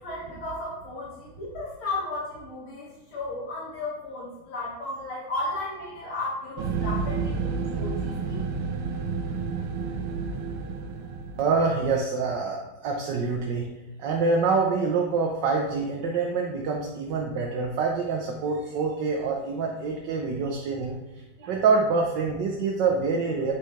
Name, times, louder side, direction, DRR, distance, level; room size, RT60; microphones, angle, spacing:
voice 1, 0.0-8.5, left 2 dB, 80° left, -6 dB, 2.7 m, -34 dB
voice 2, 5.4-6.2 11.4-13.7 14.0-21.0 21.4-23.5, right 4 dB, 65° right, 0 dB, 1.4 m, -26 dB
sound 1, 6.6-11.8, right 4 dB, 90° right, 1.6 m, -30 dB
8.9 x 5.9 x 3.2 m, 0.97 s
omnidirectional pair, 2.3 m